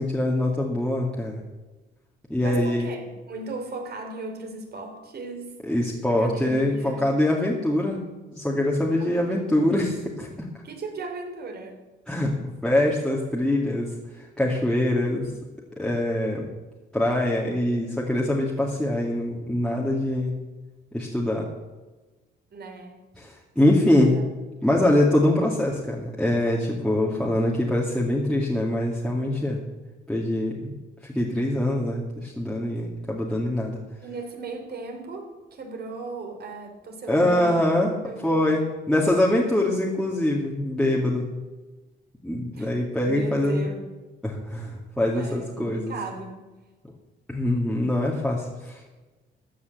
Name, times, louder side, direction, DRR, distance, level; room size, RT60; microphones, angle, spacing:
voice 1, 0.0-1.4 2.3-2.9 5.6-8.0 8.3-10.5 12.1-13.9 14.4-15.3 15.8-16.5 16.9-20.3 20.9-21.5 23.2-24.1 24.6-29.6 30.1-30.8 31.0-33.8 37.1-37.9 38.2-41.3 42.2-43.6 44.2-45.9 47.3-48.8, left 1 dB, 5° left, -4 dB, 2.3 m, -24 dB
voice 2, 2.4-3.0 3.3-5.6 6.1-7.2 9.0-9.8 10.6-11.8 22.5-23.0 24.0-24.2 34.0-37.7 38.0-38.5 42.5-42.7 43.0-43.9 45.1-46.4, right 3 dB, 55° right, 4 dB, 3.1 m, -37 dB
14.0 x 5.6 x 9.5 m, 1.2 s
cardioid pair, 90°, 20 cm